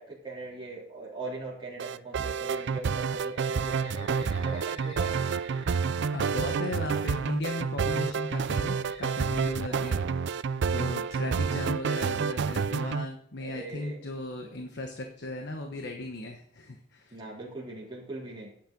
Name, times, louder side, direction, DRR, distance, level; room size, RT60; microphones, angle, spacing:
voice 1, 0.0-5.3 9.7-10.0 13.4-14.0 17.1-18.5, right 3 dB, 25° right, -5 dB, 3.3 m, -41 dB
sound 1, 1.8-13.1, right 5 dB, 60° right, 0.4 m, -29 dB
Bird, 3.3-7.1 8.8-10.6, equal, 35° left, 3.4 m, -50 dB
voice 2, 6.1-10.0 10.7-17.2, left 1 dB, 60° left, 4 dB, 1.1 m, -36 dB
Car, 6.6-7.5 8.7-10.1 10.9-11.7, left 1 dB, 80° left, 3.3 m, -55 dB
11.5 x 9.0 x 3.9 m, 0.68 s
head